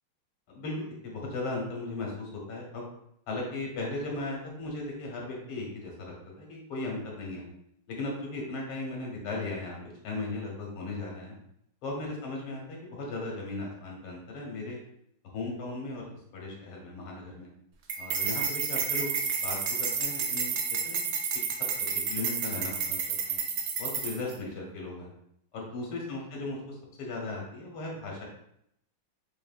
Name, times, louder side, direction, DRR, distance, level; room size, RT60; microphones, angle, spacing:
voice 1, 0.5-2.8 3.3-7.5 7.9-11.3 11.8-14.8 15.3-16.1 16.3-17.5 18.0-20.5 20.8-21.0 21.9-23.0 23.3-23.4 23.8-25.1 25.5-28.3, left 2 dB, 90° left, -1 dB, 2.0 m, -37 dB
sound 1, 17.9-24.3, right 6 dB, 80° right, 0.8 m, -30 dB
5.7 x 2.8 x 2.4 m, 0.74 s
omnidirectional pair, 2.3 m